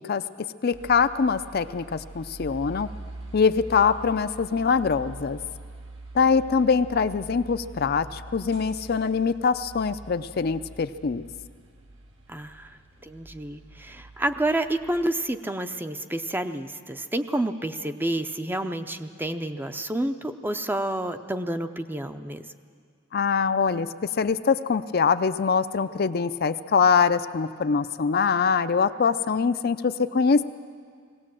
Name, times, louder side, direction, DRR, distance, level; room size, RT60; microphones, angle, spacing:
voice 1, 0.1-2.9 3.3-5.4 6.1-11.2 23.1-30.4, left 5 dB, 50° left, 11 dB, 0.5 m, -23 dB
sound 1, 0.7-15.1, right 2 dB, 70° right, 2.1 m, -44 dB
voice 2, 12.3-12.7 13.0-22.4, right 1 dB, 10° right, 8 dB, 0.5 m, -29 dB
19.5 x 17.5 x 7.6 m, 2.1 s
head